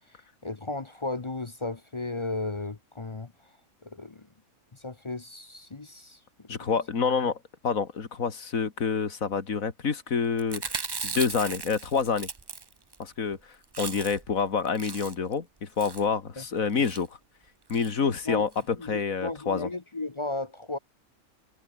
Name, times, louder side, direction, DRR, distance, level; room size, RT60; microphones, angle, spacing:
voice 1, 0.1-3.3 3.8-4.3 4.7-6.7 16.4-16.5 18.2-18.4 18.8-20.8, left 2 dB, 25° left, 0.7 m, -35 dB
voice 2, 6.5-7.4 7.6-10.8 11.0-12.3 13.0-13.4 13.8-17.1 17.7-19.7, left 5 dB, 65° left, 2.5 m, -27 dB
Chewing mastication, 10.4-13.0 13.3-13.4 13.6-14.3 14.6-15.3 15.8-16.1 16.7-17.0 17.7-17.9 18.2-18.3 18.5-18.6, right 4 dB, 35° right, 0.3 m, -37 dB
omnidirectional pair, 1.5 m